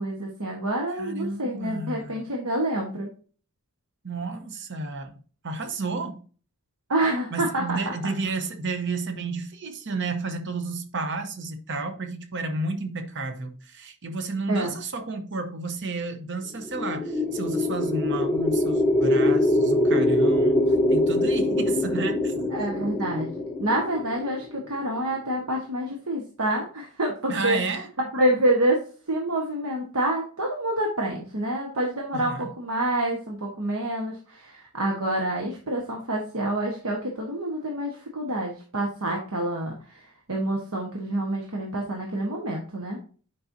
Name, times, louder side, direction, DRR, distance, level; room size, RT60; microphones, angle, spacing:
voice 1, 0.0-3.1 6.9-7.9 14.5-14.7 22.5-23.3 23.6-27.6 28.1-43.0, right 1 dB, 80° right, 1.3 m, -27 dB
voice 2, 1.0-2.2 4.0-6.2 7.3-22.5 27.3-27.9 32.1-32.5, right 3 dB, 55° right, 0.9 m, -32 dB
sound 1, 16.6-24.8, left 1 dB, ahead, 0.9 m, -23 dB
8.7 x 5.3 x 2.7 m
head